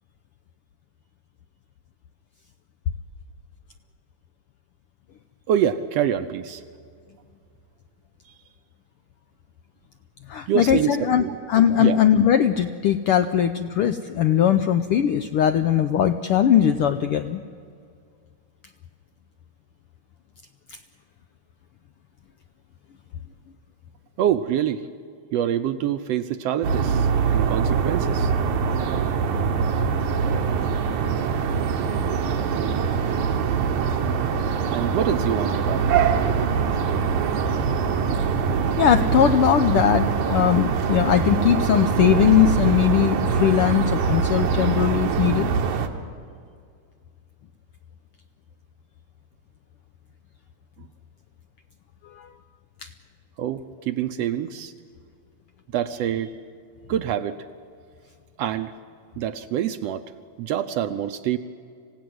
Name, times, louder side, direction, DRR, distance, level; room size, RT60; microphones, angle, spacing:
voice 1, 5.5-6.6 10.5-11.4 11.8-12.0 24.2-24.8 25.3-28.3 34.7-35.9 50.8-50.9 53.4-54.7 55.7-56.3 56.9-57.4 58.4-58.7 59.2-60.0 60.4-61.4, right 10 dB, 70° right, 10 dB, 1.7 m, -26 dB
voice 2, 10.3-17.4 38.8-45.5 52.2-52.3 52.8-52.9, left 9 dB, 80° left, 8 dB, 1.3 m, -20 dB
sound 1, 26.6-45.9, right 6 dB, 90° right, 2.8 m, -23 dB
26.0 x 16.5 x 9.5 m, 2.2 s
omnidirectional pair, 3.3 m